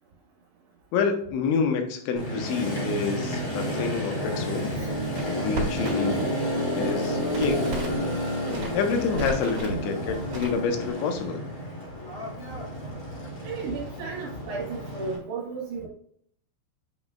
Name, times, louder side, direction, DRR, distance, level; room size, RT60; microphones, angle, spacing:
voice 1, 0.9-4.7 5.4-6.5 6.7-7.8 8.7-11.4, left 5 dB, 90° left, 5 dB, 3.3 m, -28 dB
Motorcycle, 2.2-15.2, equal, 35° left, 2.7 m, -30 dB
Crackle, 4.7-6.2 6.5-8.0 8.4-9.8 10.3-10.9, right 2 dB, 35° right, 3.0 m, -35 dB
voice 2, 13.4-15.9, right 4 dB, 70° right, -5 dB, 3.3 m, -34 dB
9.1 x 5.2 x 2.4 m, 0.64 s
omnidirectional pair, 5.1 m